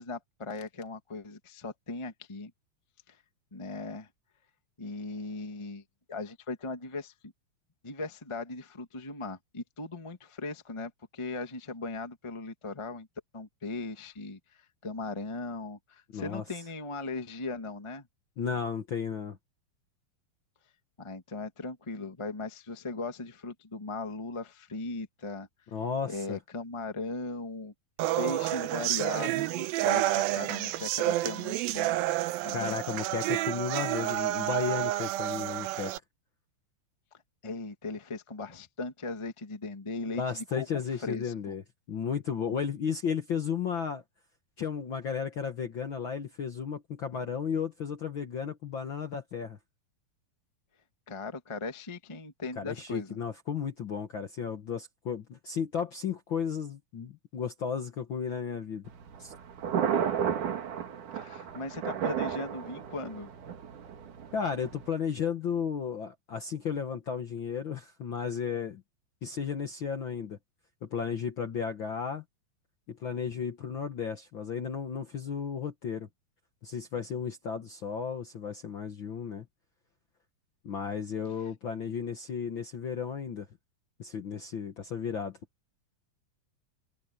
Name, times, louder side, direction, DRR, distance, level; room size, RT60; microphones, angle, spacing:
voice 1, 0.0-2.5 3.1-3.2 3.5-4.1 4.8-5.8 6.1-7.3 7.8-13.1 13.3-14.4 14.8-18.1 21.0-25.5 26.1-27.7 28.2-32.0 32.4-32.8 37.4-41.6 51.1-53.2 61.1-63.3, left 3 dB, 40° left, 0.4 m, -38 dB
voice 2, 16.1-16.4 18.4-19.4 25.7-26.4 32.5-35.9 40.2-41.6 41.9-44.0 44.6-49.6 52.6-58.9 59.2-59.3 64.3-68.8 69.2-70.4 70.8-72.2 72.9-76.1 76.6-79.5 80.6-83.5 84.0-85.4, left 7 dB, 65° left, 1.2 m, -34 dB
sound 1, 28.0-36.0, right 15 dB, 90° right, 2.6 m, -30 dB
Thunder, 58.9-64.9, right 8 dB, 60° right, 3.4 m, -33 dB
open air
omnidirectional pair, 4.1 m